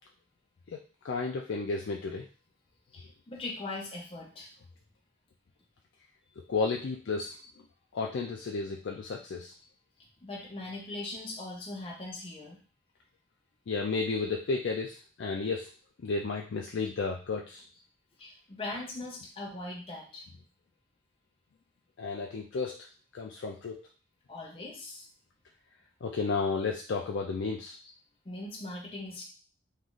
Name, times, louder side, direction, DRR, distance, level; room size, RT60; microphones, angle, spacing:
voice 1, 0.7-2.3 6.4-7.7 7.9-9.5 13.7-15.7 16.0-17.6 22.0-22.9 23.1-23.9 26.0-27.8, left 4 dB, 80° left, 1 dB, 0.4 m, -33 dB
voice 2, 2.9-4.5 10.2-12.6 18.2-20.3 24.3-25.1 28.3-29.2, left 2 dB, 30° left, -2 dB, 0.6 m, -40 dB
3.1 x 2.4 x 3.8 m, 0.37 s
head